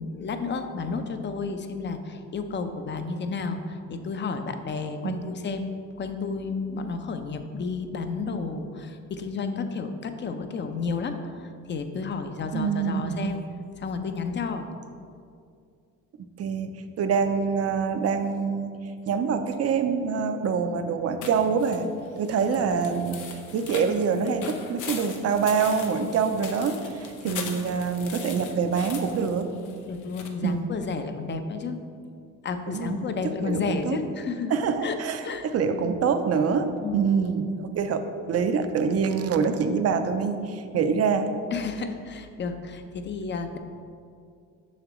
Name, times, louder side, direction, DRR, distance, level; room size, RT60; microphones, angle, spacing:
voice 1, 0.0-13.4 13.8-14.7 22.4-22.8 27.2-27.5 29.9-31.8 32.4-34.5 34.8-35.8 36.8-37.1 41.5-43.6, left 4 dB, 40° left, 8 dB, 0.6 m, -32 dB
voice 2, 12.5-13.3 16.4-18.7 19.1-21.9 22.2-23.2 23.5-29.5 30.4-30.7 32.7-33.1 33.4-34.0 34.5-35.2 35.5-41.3, right 6 dB, 55° right, 8 dB, 0.6 m, -25 dB
sound 1, 21.2-30.3, left 6 dB, 85° left, 0.8 m, -40 dB
7.2 x 5.9 x 3.1 m, 2.3 s
cardioid pair, 90°, 30 cm